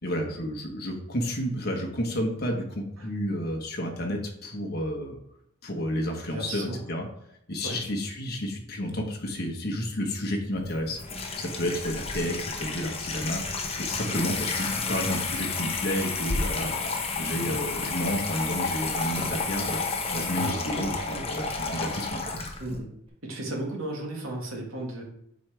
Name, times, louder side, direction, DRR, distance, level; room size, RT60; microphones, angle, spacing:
voice 1, 0.0-5.2 5.6-7.1 7.5-16.8 17.2-22.3, equal, 50° left, 1 dB, 1.3 m, -31 dB
voice 2, 6.3-6.8 7.6-7.8 14.0-14.2 17.3-17.6 20.3-20.6 22.6-22.9 23.2-25.0, right 1 dB, 80° right, 0 dB, 1.9 m, -34 dB
Water tap faucet / Sink (filling or washing), 10.6-22.8, left 4 dB, 30° left, 0.9 m, -31 dB
8.2 x 4.8 x 3.4 m, 0.77 s
head